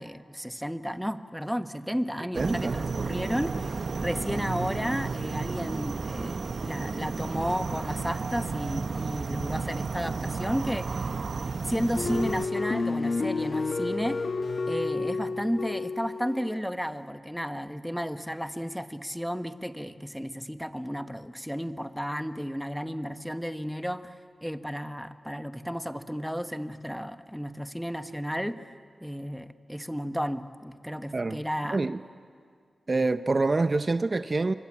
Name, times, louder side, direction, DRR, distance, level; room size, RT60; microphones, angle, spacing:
voice 1, 0.0-10.9 11.6-14.2 14.7-28.7 29.0-31.8, equal, ahead, 1.2 m, -33 dB
voice 2, 2.3-2.8 31.1-31.4 31.7-32.0 32.9-34.5, right 3 dB, 40° right, 0.6 m, -26 dB
sound 1, 2.3-12.5, right 4 dB, 65° right, 1.1 m, -32 dB
sound 2, 12.0-16.6, left 3 dB, 60° left, 1.3 m, -30 dB
27.5 x 24.0 x 8.7 m
cardioid pair, 70°, 0 cm